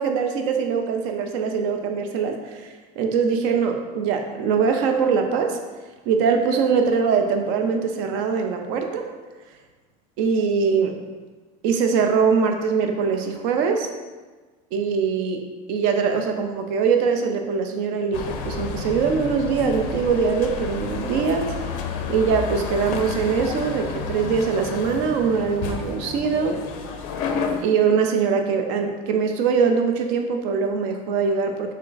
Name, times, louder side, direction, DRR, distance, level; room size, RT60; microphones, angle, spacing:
voice 1, 0.0-5.6 6.1-9.1 10.2-11.0 11.6-13.9 14.7-15.4 15.7-21.5 22.1-26.6 27.6-31.7, right 5 dB, 50° right, 5 dB, 0.5 m, -22 dB
sound 1, 18.1-27.6, left 5 dB, 60° left, 0.5 m, -30 dB
3.6 x 3.3 x 3.9 m, 1.3 s
cardioid pair, 180°, 20 cm